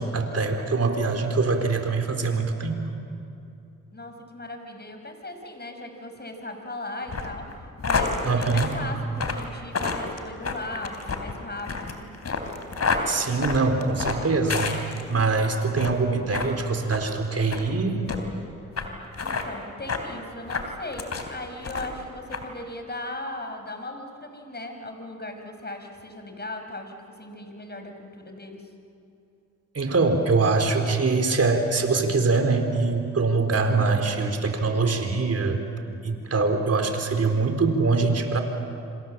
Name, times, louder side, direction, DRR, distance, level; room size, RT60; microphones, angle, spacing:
voice 1, 0.0-2.9 8.2-8.7 13.1-14.7 15.1-18.0 29.7-35.6 36.0-38.4, right 4 dB, 45° right, 5 dB, 4.1 m, -23 dB
voice 2, 3.9-12.1 19.2-28.7, left 2 dB, 30° left, 5 dB, 5.1 m, -38 dB
sound 1, 7.1-15.3 15.7-16.0 16.3-16.5 16.9-17.0 17.5-17.7 18.1-18.2 18.8-18.9 19.1-19.5 19.9-20.1 20.5-21.3 21.6-22.0 22.3-22.4, left 4 dB, 45° left, 3.6 m, -29 dB
27.5 x 26.5 x 7.6 m, 2.6 s
supercardioid pair, 60°, 35 cm